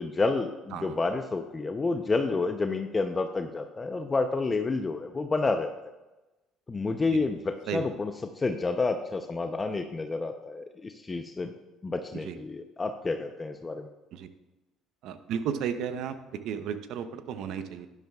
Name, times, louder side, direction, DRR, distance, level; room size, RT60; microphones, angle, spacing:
voice 1, 0.0-5.7 6.7-11.5 11.8-13.9, left 3 dB, 25° left, 6 dB, 0.7 m, -29 dB
voice 2, 15.0-16.1 16.4-17.9, right 8 dB, 70° right, 10 dB, 0.8 m, -33 dB
12.5 x 10.5 x 2.4 m, 1.1 s
supercardioid pair, 75°, 0 cm